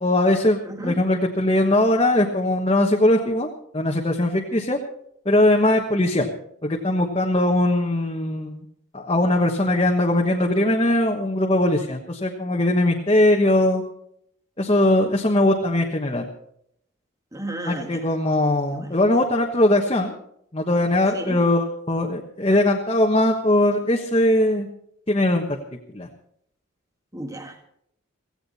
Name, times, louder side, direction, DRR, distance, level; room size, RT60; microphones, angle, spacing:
voice 1, 0.0-3.5 3.7-4.8 5.2-6.3 6.6-8.6 8.9-13.8 14.6-16.3 17.6-20.1 20.5-24.7 25.1-25.6 25.9-26.1, left 1 dB, 25° left, 1.2 m, -20 dB
voice 2, 0.6-1.0 17.3-18.0 18.7-19.0 21.1-21.4 27.1-27.7, right 1 dB, 15° right, 1.7 m, -33 dB
17.0 x 16.0 x 4.2 m
head